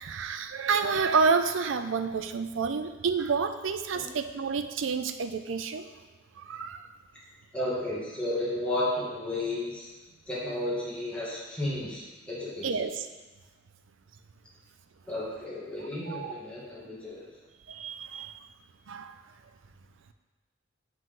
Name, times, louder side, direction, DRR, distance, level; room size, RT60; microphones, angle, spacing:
voice 1, 0.0-5.9 6.4-6.9 12.6-13.1 16.1-16.3 17.7-18.3 18.9-19.2, right 5 dB, 85° right, 8 dB, 0.5 m, -29 dB
voice 2, 7.5-9.9 10.3-12.0 12.3-12.8 15.1-17.3, left 1 dB, 5° left, -9 dB, 2.1 m, -33 dB
7.8 x 5.5 x 3.8 m, 1.2 s
head